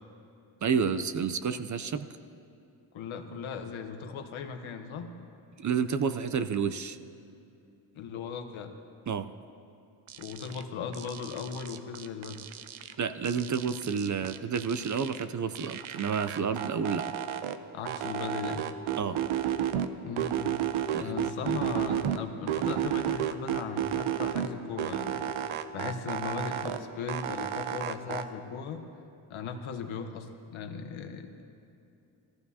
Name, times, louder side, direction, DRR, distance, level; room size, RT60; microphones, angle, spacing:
voice 1, 0.6-2.1 5.6-7.0 9.1-9.2 13.0-17.0 19.0-19.2 20.9-21.2, right 6 dB, 40° right, 10 dB, 0.5 m, -30 dB
voice 2, 2.9-5.1 7.9-8.7 10.2-12.4 17.7-18.7 20.0-20.7 21.0-28.8 29.3-31.4, left 6 dB, 70° left, 6 dB, 1.2 m, -38 dB
sound 1, 10.1-10.6 10.9-12.9 13.2-15.2 15.5-17.6 17.9-19.9 20.2-22.2 22.5-24.5 24.8-26.8 27.1-28.2, right 10 dB, 75° right, 0.7 m, -32 dB
17.5 x 14.5 x 2.8 m, 2.7 s
cardioid pair, 70°, 49 cm